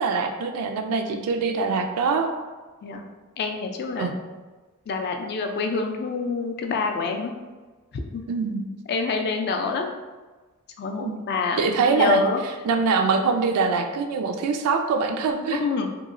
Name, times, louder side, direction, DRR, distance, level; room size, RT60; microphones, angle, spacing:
voice 1, 0.0-2.3 4.0-4.1 8.3-8.6 11.0-11.2 11.6-12.2 12.7-15.6, right 4 dB, 80° right, 6 dB, 0.3 m, -23 dB
voice 2, 3.4-4.1 4.9-7.3 8.1-8.2 8.9-9.9 10.8-11.6 11.9-12.4 15.6-15.9, left 4 dB, 50° left, 4 dB, 0.3 m, -26 dB
2.9 x 2.7 x 2.5 m, 1.3 s
head